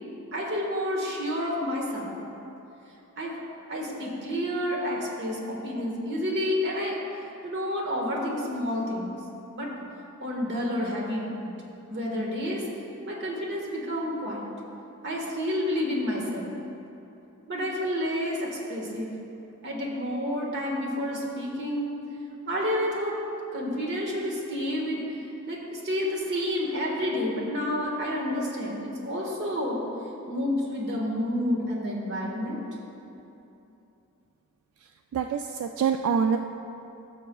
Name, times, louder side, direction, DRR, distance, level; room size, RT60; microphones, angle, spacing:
voice 1, 0.3-2.1 3.2-3.3 3.7-6.9 7.4-9.1 9.5-9.7 10.2-11.6 11.9-12.6 13.1-14.4 15.0-16.5 17.5-19.1 19.6-21.9 22.5-23.1 23.5-25.0 25.5-29.8 30.3-32.6, left 1 dB, 55° right, -2 dB, 1.5 m, -29 dB
voice 2, 34.8-36.4, right 6 dB, 85° right, 5 dB, 0.3 m, -26 dB
16.0 x 6.8 x 2.3 m, 2.9 s
head